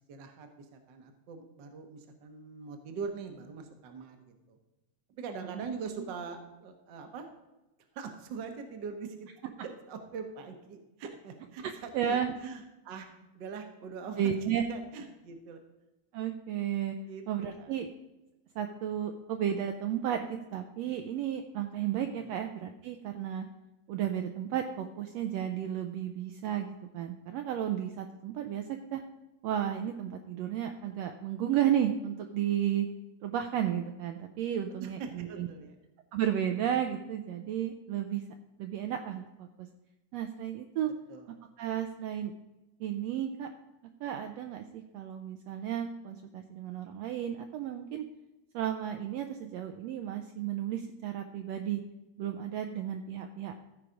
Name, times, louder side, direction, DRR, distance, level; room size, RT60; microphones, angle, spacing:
voice 1, 0.1-4.6 5.2-7.3 7.9-13.1 13.3-14.3 14.7-15.6 17.0-17.2 17.6-17.8 22.2-22.3 34.8-35.8 41.1-41.3, right 5 dB, 55° right, 5 dB, 1.2 m, -42 dB
voice 2, 11.6-12.4 14.2-14.6 16.1-17.0 17.3-17.9 18.6-23.5 23.9-29.0 29.4-32.9 33.2-35.5 36.1-38.2 38.6-39.5 40.1-40.9 41.6-42.3 42.8-43.5 44.0-48.0 48.5-51.8 52.2-53.5, right 10 dB, 80° right, 5 dB, 1.6 m, -33 dB
14.0 x 4.8 x 5.1 m, 1.0 s
omnidirectional pair, 3.4 m